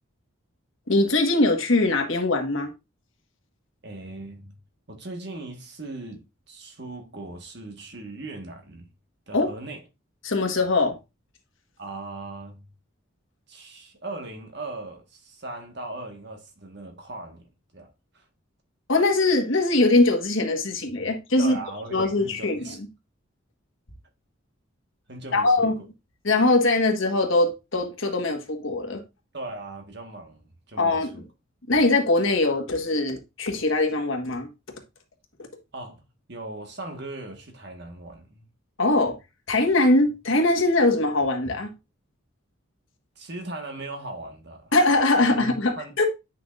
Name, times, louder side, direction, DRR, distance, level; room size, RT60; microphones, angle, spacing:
voice 1, 0.9-2.7 9.3-9.5 10.2-11.0 18.9-21.6 21.9-22.7 25.3-25.8 26.2-29.0 30.8-31.1 31.7-34.5 38.8-39.2 39.5-41.7 44.7-46.1, left 2 dB, 70° left, 1.5 m, -22 dB
voice 2, 3.8-4.6 4.9-8.9 9.3-9.8 11.8-12.7 13.5-17.5 17.7-17.9 18.1-18.2 21.4-22.8 25.1-25.7 29.3-31.2 35.7-36.0 36.3-38.5 43.1-44.7 45.1-45.9, right 2 dB, 55° right, 1.6 m, -39 dB
9.6 x 5.7 x 2.5 m
head